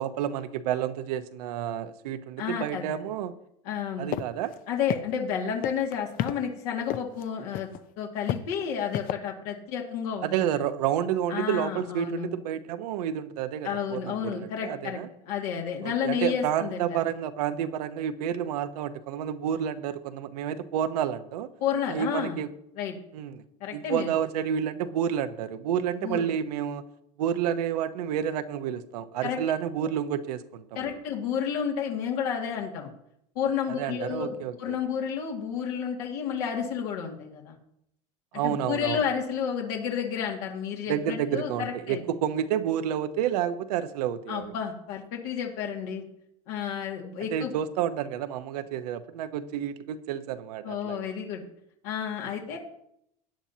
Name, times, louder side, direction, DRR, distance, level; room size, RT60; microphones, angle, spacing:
voice 1, 0.0-3.3 4.0-4.5 10.2-15.1 15.8-21.5 21.9-22.5 23.1-23.4 23.7-26.8 27.2-31.0 33.7-34.8 38.3-39.0 40.9-44.5 47.3-51.1, right 9 dB, 80° right, 10 dB, 1.0 m, -30 dB
voice 2, 2.4-3.1 3.6-4.1 4.7-7.7 8.0-10.5 11.3-12.3 13.6-15.0 15.3-17.0 21.6-22.4 22.8-22.9 23.6-24.2 26.0-26.3 29.2-29.4 30.8-32.9 33.4-37.6 38.4-42.0 44.3-46.0 46.5-47.5 50.6-51.4 51.8-52.6, left 7 dB, 75° left, 0 dB, 2.1 m, -31 dB
sound 1, 4.1-4.2 4.5-4.6 4.9-5.3 5.6-6.3 6.9-7.2 7.5-7.8 8.3-9.1, left 12 dB, 45° left, 0.6 m, -29 dB
16.5 x 10.0 x 2.8 m, 0.76 s
supercardioid pair, 110°, 20 cm